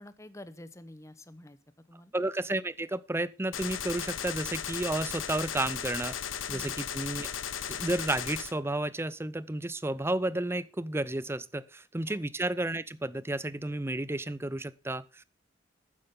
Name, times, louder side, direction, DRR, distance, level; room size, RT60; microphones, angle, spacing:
voice 1, 0.0-1.6 1.9-2.1 6.5-6.7 12.1-12.2, left 1 dB, 15° left, 0.9 m, -48 dB
voice 2, 2.1-6.2 6.5-7.3 7.7-15.2, right 2 dB, 15° right, 0.5 m, -32 dB
Gunshot gunfire, 3.5-8.5, left 8 dB, 85° left, 1.1 m, -36 dB
12.0 x 9.7 x 3.7 m
head